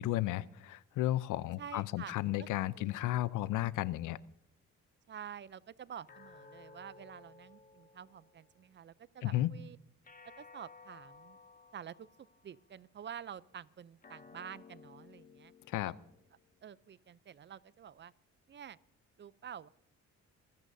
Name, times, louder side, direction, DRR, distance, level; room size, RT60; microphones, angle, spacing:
voice 1, 0.0-4.2 9.2-9.5 15.7-15.9, left 15 dB, 85° left, 18 dB, 0.6 m, -33 dB
voice 2, 1.6-3.0 5.1-9.8 10.4-11.4 11.7-15.5 15.8-15.9 16.6-18.1 18.5-18.8 19.2-19.7, right 8 dB, 40° right, 19 dB, 0.5 m, -49 dB
sound 1, 6.1-8.7 10.0-12.6 14.0-16.6, left 4 dB, 30° left, 1.2 m, -57 dB
25.0 x 15.0 x 2.7 m, 0.74 s
cardioid pair, 90°, 30 cm